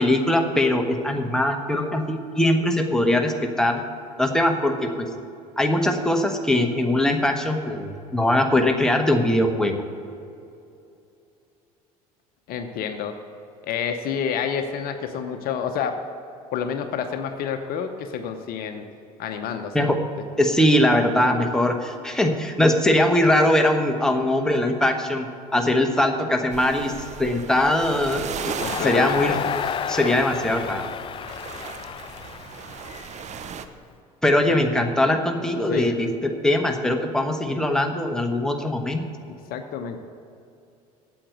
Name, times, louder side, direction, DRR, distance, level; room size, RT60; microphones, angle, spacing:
voice 1, 0.0-3.8 4.2-5.1 5.6-9.8 19.7-20.0 20.4-26.9 27.2-29.4 29.9-30.9 34.2-39.0, left 1 dB, 5° left, 3 dB, 1.2 m, -21 dB
voice 2, 12.5-13.2 13.6-16.0 16.5-18.8 19.2-20.0 28.6-29.4 34.5-34.6 35.7-35.9 39.5-40.0, left 7 dB, 50° left, 7 dB, 0.8 m, -29 dB
sound 1, 26.5-33.7, right 7 dB, 40° right, 0.8 m, -37 dB
Crowd, 28.6-33.8, left 9 dB, 30° left, 0.4 m, -31 dB
8.6 x 7.9 x 7.8 m, 2.6 s
hypercardioid pair, 65°, 19 cm